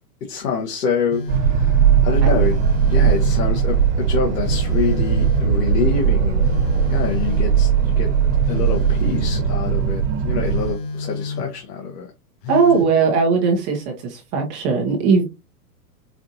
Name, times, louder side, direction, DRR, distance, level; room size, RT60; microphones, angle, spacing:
voice 1, 0.2-2.6 2.9-6.5 6.9-8.1 8.5-12.1, left 5 dB, 85° left, 1.3 m, -26 dB
Telephone, 1.1-1.6 2.4-3.6 4.4-5.6 6.4-7.7 8.4-9.6 10.4-11.7 12.4-13.0, left 4 dB, 35° left, 0.5 m, -30 dB
sound 1, 1.3-10.7, right 7 dB, 45° right, 1.2 m, -18 dB
voice 2, 12.5-15.3, right 5 dB, 25° right, 0.7 m, -19 dB
5.0 x 2.5 x 2.7 m
supercardioid pair, 155°, 47 cm